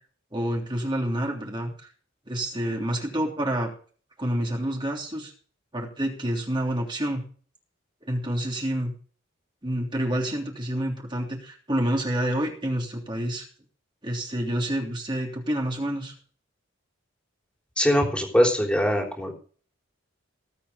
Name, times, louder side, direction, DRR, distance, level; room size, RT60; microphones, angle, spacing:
voice 1, 0.3-1.9 2.3-3.7 4.2-5.3 5.7-7.2 8.0-8.9 9.6-13.4 14.0-16.1, right 1 dB, 25° right, 0 dB, 3.2 m, -28 dB
voice 2, 17.8-19.3, equal, 5° left, 1 dB, 3.7 m, -22 dB
18.5 x 8.7 x 5.2 m, 0.43 s
head